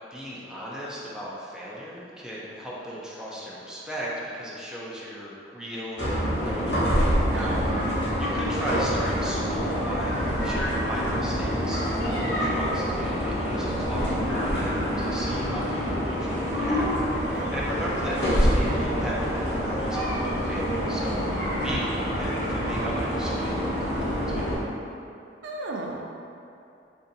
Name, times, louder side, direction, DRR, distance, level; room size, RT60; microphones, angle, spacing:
voice 1, 0.1-16.9 17.3-24.4, equal, 5° right, -7 dB, 0.4 m, -36 dB
sound 1, 6.0-24.6, equal, 70° left, 1.0 m, -26 dB
voice 2, 7.3-7.7 17.3-17.5 25.4-26.1, right 2 dB, 80° right, 0 dB, 0.4 m, -34 dB
2.6 x 2.6 x 3.9 m, 2.7 s
head